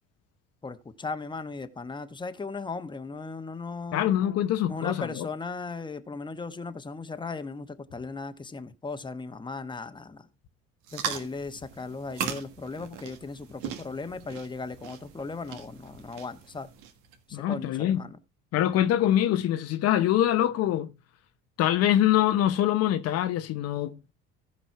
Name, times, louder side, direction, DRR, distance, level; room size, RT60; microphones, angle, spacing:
voice 1, 0.6-4.1 4.7-10.2 10.9-16.7 17.3-18.2, left 4 dB, 15° left, 1.1 m, -37 dB
voice 2, 3.9-5.3 17.3-18.1 18.5-20.9 21.6-24.1, left 12 dB, 60° left, 0.9 m, -24 dB
sound 1, 10.8-17.2, right 8 dB, 80° right, 1.6 m, -39 dB
14.5 x 5.4 x 4.5 m
supercardioid pair, 75°, 29 cm